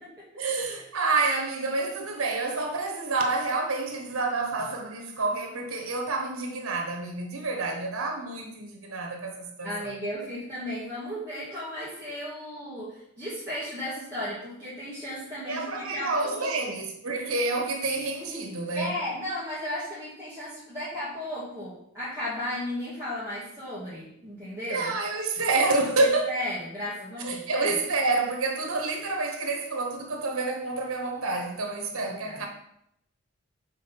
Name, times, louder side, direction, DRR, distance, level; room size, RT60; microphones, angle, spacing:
voice 1, 0.4-9.9 15.4-18.9 24.7-26.3 27.2-32.5, right 3 dB, 80° right, 1.4 m, -28 dB
voice 2, 9.6-16.8 18.8-24.9 26.0-27.8 31.9-32.5, left 1 dB, 15° right, 1.9 m, -35 dB
6.4 x 3.8 x 5.8 m
head